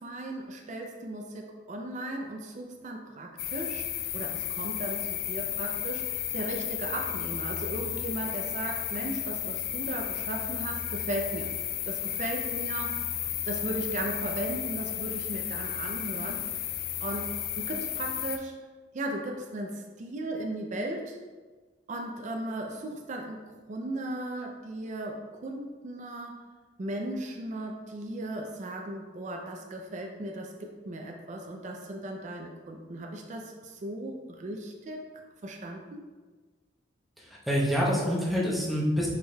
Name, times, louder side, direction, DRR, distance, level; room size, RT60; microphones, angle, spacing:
voice 1, 0.0-3.9 4.1-11.5 11.8-13.1 13.5-16.4 17.0-18.5 18.9-21.2 21.9-26.3 26.8-35.0 35.4-36.0, right 1 dB, 40° right, 1 dB, 0.4 m, -36 dB
sound 1, 3.4-18.4, left 11 dB, 50° left, 0.3 m, -33 dB
voice 2, 37.2-39.1, equal, ahead, -5 dB, 0.7 m, -27 dB
4.8 x 4.4 x 2.2 m, 1.3 s
head